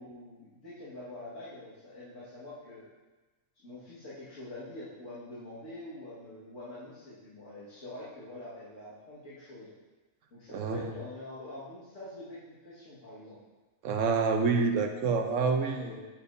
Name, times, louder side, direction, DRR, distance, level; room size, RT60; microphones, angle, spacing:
voice 1, 0.0-2.9 3.6-9.7 10.3-13.4 15.2-16.1, left 1 dB, 80° left, -11 dB, 2.2 m, -45 dB
voice 2, 10.5-10.9 13.8-16.0, right 4 dB, 80° right, 4 dB, 1.1 m, -27 dB
8.9 x 6.8 x 2.7 m, 1.2 s
omnidirectional pair, 1.3 m